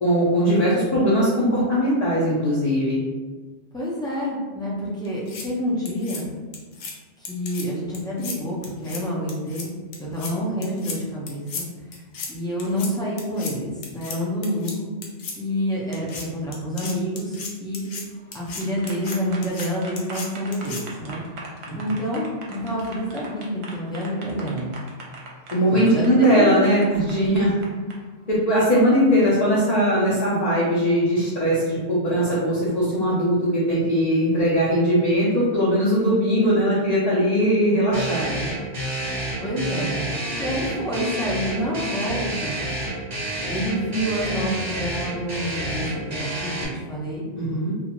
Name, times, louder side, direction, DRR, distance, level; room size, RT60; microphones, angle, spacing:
voice 1, 0.0-3.0 21.7-21.8 25.5-27.5 28.3-38.4 47.3-47.7, equal, 45° left, -9 dB, 0.6 m, -20 dB
voice 2, 3.7-6.3 7.2-9.7 10.0-11.7 12.3-14.9 15.4-17.8 18.3-21.2 21.7-24.7 25.7-26.6 39.4-40.1 40.4-42.6 43.5-47.2, equal, 5° left, -6 dB, 0.4 m, -28 dB
sound 1, 5.1-5.4 5.9-6.2 6.5-6.9 7.3-7.6 7.9-8.4 8.6-9.0 9.3-9.6 9.9-10.3 10.6-11.0 11.3-11.6 11.9-12.3 12.6-12.9 13.2-13.5 13.8-14.2 14.4-14.7 15.0-15.4 15.9-16.2 16.5-18.0 18.3-18.6 18.9-19.2 19.4-19.7 20.0-20.3 20.5-20.8, left 5 dB, 80° left, 0.9 m, -34 dB
sound 2, 18.2-27.9, right 3 dB, 70° right, 0.9 m, -40 dB
sound 3, 37.9-46.6, right 1 dB, 40° right, 0.8 m, -29 dB
2.4 x 2.4 x 2.9 m, 1.3 s
omnidirectional pair, 1.2 m